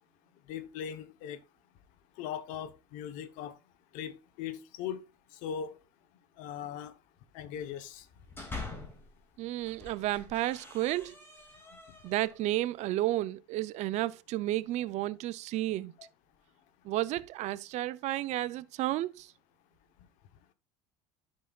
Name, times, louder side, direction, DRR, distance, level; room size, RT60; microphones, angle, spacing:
voice 1, 0.5-1.4 2.2-3.5 3.9-5.0 5.4-5.7 6.4-6.9 7.3-8.0 16.0-16.1, left 8 dB, 75° left, 1.0 m, -39 dB
sound 1, 8.0-9.1 9.6-12.4, left 3 dB, 15° left, 2.4 m, -45 dB
voice 2, 9.4-11.1 12.0-15.9 16.8-19.3, right 15 dB, 60° right, 0.5 m, -32 dB
11.5 x 5.7 x 2.4 m
cardioid pair, 120°, 13 cm